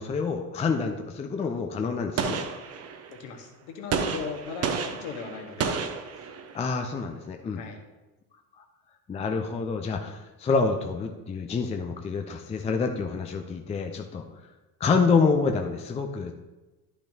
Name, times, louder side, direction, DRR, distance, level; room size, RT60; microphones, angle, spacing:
voice 1, 0.0-2.4 6.5-7.6 9.1-14.2 14.8-16.3, left 4 dB, 15° left, 5 dB, 0.5 m, -27 dB
Gunshot gunfire, 2.2-3.2 3.9-6.7, right 5 dB, 30° right, 0.8 m, -31 dB
voice 2, 3.1-5.8 6.2-6.3 7.5-7.8, left 5 dB, 55° left, 3 dB, 1.5 m, -38 dB
11.5 x 5.7 x 2.8 m, 1.1 s
figure-of-eight pair, 65°, 49 cm